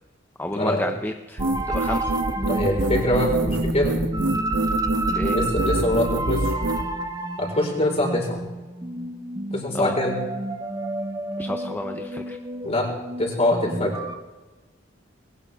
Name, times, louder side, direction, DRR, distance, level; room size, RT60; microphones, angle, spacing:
voice 1, 0.4-2.1 5.1-5.4 9.7-10.0 11.4-12.4, left 1 dB, 10° left, 5 dB, 0.6 m, -31 dB
sound 1, 1.4-14.1, right 1 dB, 20° right, 1.0 m, -30 dB
sound 2, 1.4-6.8, right 2 dB, 70° right, 1.2 m, -26 dB
voice 2, 2.4-4.0 5.3-6.5 7.4-8.4 9.5-10.2 12.6-12.9 13.2-13.9, left 1 dB, 35° left, -1 dB, 4.6 m, -24 dB
21.0 x 19.0 x 3.5 m, 1.2 s
head